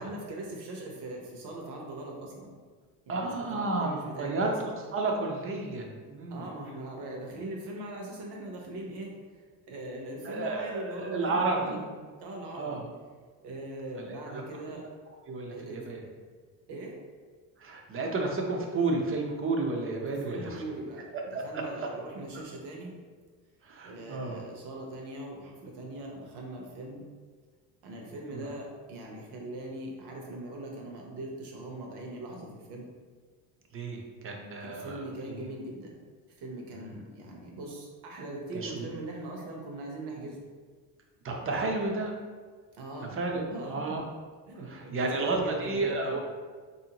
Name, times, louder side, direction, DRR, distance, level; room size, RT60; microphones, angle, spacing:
voice 1, 0.0-2.5 3.1-4.5 6.3-11.9 12.2-12.8 13.4-14.8 15.5-15.9 16.7-17.0 20.1-21.1 21.4-22.9 23.8-27.0 27.8-32.9 34.6-35.9 36.4-40.4 42.8-43.2 43.5-44.0 44.5-46.2, right 1 dB, 60° right, 0 dB, 1.0 m, -41 dB
voice 2, 3.1-6.5 10.2-11.8 12.5-12.9 13.9-14.4 15.3-16.0 17.6-20.6 21.3-21.9 22.3-22.4 23.6-24.5 28.3-28.5 33.7-35.4 36.7-37.0 38.5-38.9 41.2-42.1 43.1-44.0 44.6-46.2, right 3 dB, 30° right, 1 dB, 0.6 m, -32 dB
4.1 x 2.7 x 2.8 m, 1.5 s
cardioid pair, 125°, 45 cm